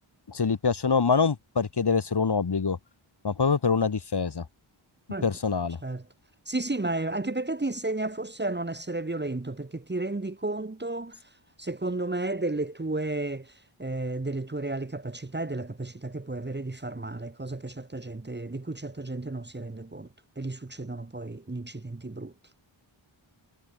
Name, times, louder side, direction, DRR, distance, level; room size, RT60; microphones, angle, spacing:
voice 1, 0.3-2.8 3.2-4.5 5.2-5.8, left 5 dB, 50° left, 1.8 m, -25 dB
voice 2, 6.5-11.2 11.6-13.5 13.8-20.1 20.4-22.3, right 2 dB, 20° right, 1.4 m, -32 dB
wide cardioid pair, 60°, 50 cm